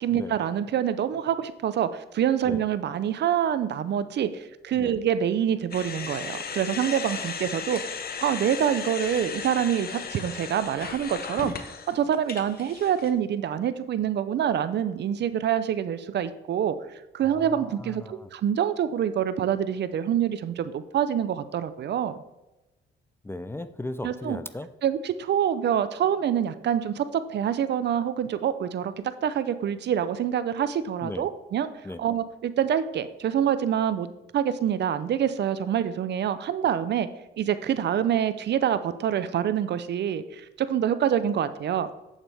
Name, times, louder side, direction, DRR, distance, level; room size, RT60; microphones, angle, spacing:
voice 1, 0.0-7.8 8.2-11.5 11.9-16.8 17.1-22.1 24.0-24.4 24.8-31.7 32.0-34.1 34.3-37.1 37.4-41.9, right 9 dB, 60° right, 13 dB, 0.6 m, -26 dB
sound 1, 5.7-13.1, left 6 dB, 50° left, 1.0 m, -36 dB
voice 2, 17.2-18.3 23.2-24.7 31.0-31.3 31.8-32.0, left 2 dB, 10° left, 12 dB, 0.5 m, -37 dB
8.2 x 7.3 x 3.4 m, 1.0 s
cardioid pair, 90°, 20 cm